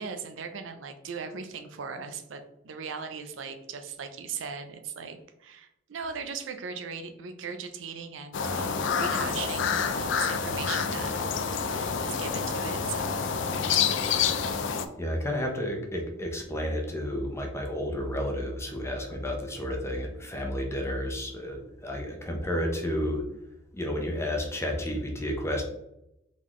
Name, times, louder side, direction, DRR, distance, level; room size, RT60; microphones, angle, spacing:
voice 1, 0.0-11.3 11.7-13.2 13.7-14.1, right 6 dB, 75° right, 7 dB, 0.5 m, -39 dB
sound 1, 8.3-14.9, left 6 dB, 70° left, 0.4 m, -28 dB
voice 2, 15.0-23.2 23.7-25.6, equal, 15° left, 2 dB, 0.7 m, -31 dB
3.9 x 3.7 x 3.1 m, 0.85 s
head